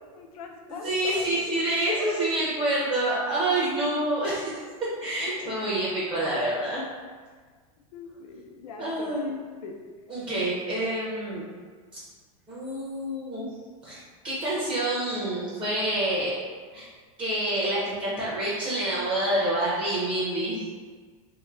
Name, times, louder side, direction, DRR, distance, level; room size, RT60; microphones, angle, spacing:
voice 1, 0.0-1.3 5.2-5.5 7.9-9.2 9.6-9.7, left 5 dB, 80° left, 2 dB, 0.5 m, -42 dB
voice 2, 0.7-4.6 5.0-6.8 8.8-9.3 10.1-11.4 12.5-13.5 13.8-14.0 14.2-16.3 16.7-16.9 17.2-20.6, right 1 dB, 25° right, -7 dB, 0.9 m, -27 dB
2.9 x 2.1 x 3.7 m, 1.5 s
supercardioid pair, 145°, 18 cm